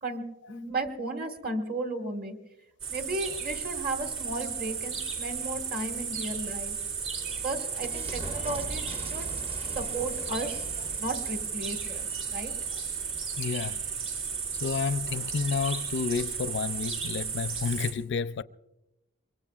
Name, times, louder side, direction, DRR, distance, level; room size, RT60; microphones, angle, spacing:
voice 1, 0.0-2.4 2.9-6.8 7.4-9.3 9.7-10.6 11.0-12.1 12.3-12.5, right 2 dB, 45° right, 1.6 m, -34 dB
sound 1, 2.8-17.9, right 6 dB, 75° right, 3.6 m, -34 dB
sound 2, 6.7-13.1, right 1 dB, 25° right, 0.7 m, -43 dB
voice 2, 13.4-13.8 14.6-18.4, left 5 dB, 55° left, 0.4 m, -30 dB
24.0 x 22.5 x 2.4 m
head